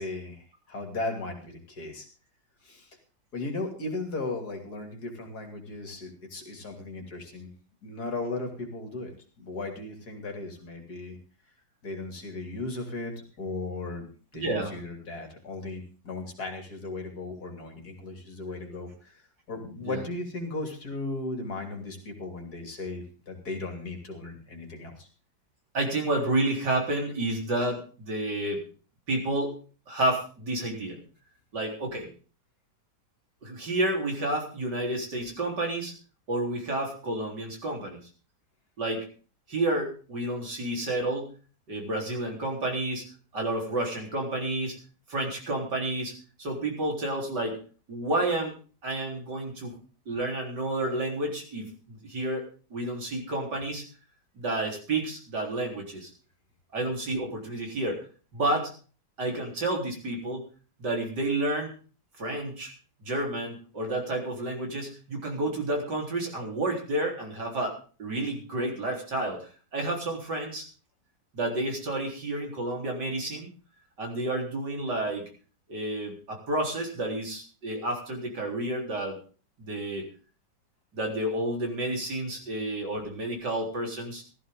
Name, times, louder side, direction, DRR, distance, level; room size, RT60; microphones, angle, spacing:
voice 1, 0.0-2.1 2.6-3.0 3.3-7.5 7.8-9.1 9.4-11.2 11.8-14.1 14.3-19.2 19.5-25.1, left 2 dB, 65° left, 3 dB, 3.4 m, -36 dB
voice 2, 14.3-14.7 19.9-20.0 25.7-28.6 29.1-29.6 29.9-31.0 31.5-32.1 33.4-35.9 36.3-38.0 38.8-39.1 39.5-41.3 41.7-43.0 43.3-44.8 45.1-46.1 46.4-47.6 47.9-48.5 48.8-49.7 50.1-53.8 54.4-56.1 56.7-58.0 58.3-58.7 59.2-60.4 60.8-61.7 62.2-62.7 63.0-70.7 71.3-73.5 74.0-75.3 75.7-79.2 79.6-80.1 80.9-84.2, right 1 dB, 75° right, 1 dB, 4.5 m, -30 dB
16.0 x 14.0 x 3.8 m, 0.39 s
omnidirectional pair, 1.8 m